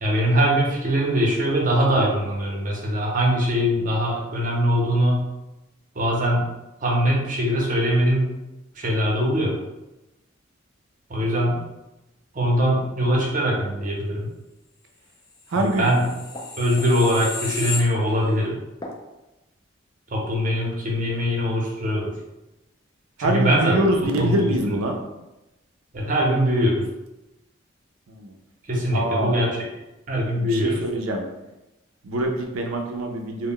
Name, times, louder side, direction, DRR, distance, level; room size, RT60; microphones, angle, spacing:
voice 1, 0.0-5.2 5.9-6.5 6.8-8.3 8.7-9.5 11.1-11.6 12.3-14.3 15.5-16.0 16.6-18.6 20.1-22.1 23.2-23.8 24.2-24.8 25.9-26.9 28.7-29.5 30.1-30.8, equal, 40° right, -3 dB, 0.6 m, -22 dB
sound 1, 15.5-18.4 18.8-19.0, left 3 dB, 20° left, 0.3 m, -33 dB
voice 2, 15.5-15.9 23.2-25.0 28.1-28.3 28.9-29.4 30.4-31.3 32.0-33.5, right 1 dB, 90° right, 2 dB, 0.4 m, -24 dB
2.1 x 2.1 x 3.6 m, 0.99 s
head